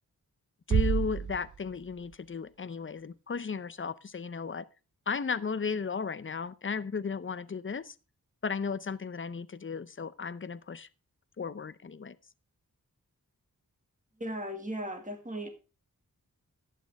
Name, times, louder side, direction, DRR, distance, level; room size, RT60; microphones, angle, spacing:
voice 1, 0.7-4.7 5.1-8.0 8.4-10.9 11.4-12.2, left 5 dB, 35° left, 0.6 m, -35 dB
sound 1, 0.7-2.6, right 7 dB, 55° right, 0.6 m, -31 dB
voice 2, 14.2-15.5, equal, 20° right, 1.8 m, -37 dB
11.5 x 8.5 x 3.4 m
wide cardioid pair, 70°, 36 cm